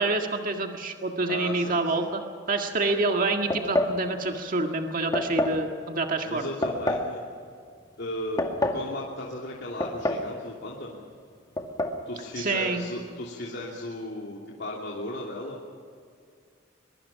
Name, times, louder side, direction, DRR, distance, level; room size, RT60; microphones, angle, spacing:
voice 1, 0.0-2.2 2.5-6.5 12.4-12.8, right 3 dB, 45° right, 3 dB, 1.9 m, -27 dB
voice 2, 1.3-2.1 6.2-7.2 8.0-11.0 12.0-15.6, left 1 dB, 60° left, -4 dB, 3.0 m, -36 dB
sound 1, 3.5-4.0 5.1-5.6 6.6-7.1 8.1-8.9 9.8-10.3 10.6-10.7 11.6-12.0, left 1 dB, 20° left, 2.1 m, -27 dB
23.5 x 23.5 x 5.9 m, 2.3 s
head